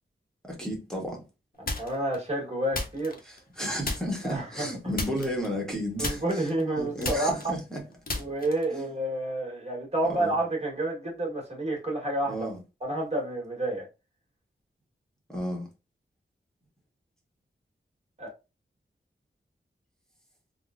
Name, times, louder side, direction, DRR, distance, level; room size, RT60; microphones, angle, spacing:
voice 1, 0.4-1.2 3.2-6.5 6.8-7.8 8.7-8.9 10.1-10.3 12.3-12.6 15.3-15.7, equal, 5° left, 1.2 m, -33 dB
sound 1, 1.7-2.2 2.7-3.5 3.8-4.3 4.9-5.7 6.0-8.8, left 2 dB, 45° left, 0.8 m, -34 dB
voice 2, 1.7-3.2 4.2-4.7 6.0-7.5 8.2-12.3 12.8-13.9 18.2-18.3, right 1 dB, 30° right, 1.6 m, -29 dB
3.6 x 2.1 x 2.4 m
wide cardioid pair, 60°, 20 cm